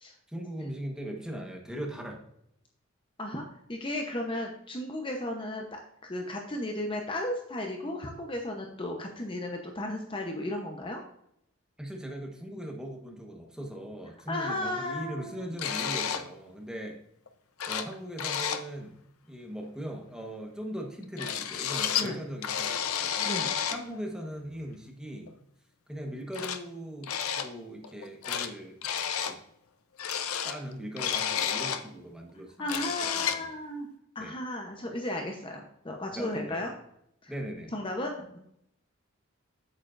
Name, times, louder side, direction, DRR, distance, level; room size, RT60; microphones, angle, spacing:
voice 1, 0.3-2.2 11.8-17.0 17.7-19.0 19.3-23.3 23.7-25.3 25.9-28.8 29.3-29.4 30.4-32.8 33.1-33.5 34.2-34.3 36.1-36.6 37.3-37.7, equal, 5° right, 1 dB, 1.2 m, -39 dB
voice 2, 3.7-11.0 14.3-15.5 22.0-22.2 23.2-23.5 32.6-33.9 34.1-36.7 37.2-37.3 37.7-38.4, left 1 dB, 25° left, 2 dB, 0.8 m, -34 dB
sound 1, 15.6-16.3 17.3-17.4 17.6-17.9 18.2-18.6 21.2-22.1 22.4-23.8 25.3-25.4 26.3-26.6 27.0-27.5 27.8-28.5 28.8-29.3 30.0-31.9 32.3-32.4 32.6-33.5, left 8 dB, 90° left, 0.7 m, -31 dB
8.6 x 7.4 x 2.5 m, 0.75 s
head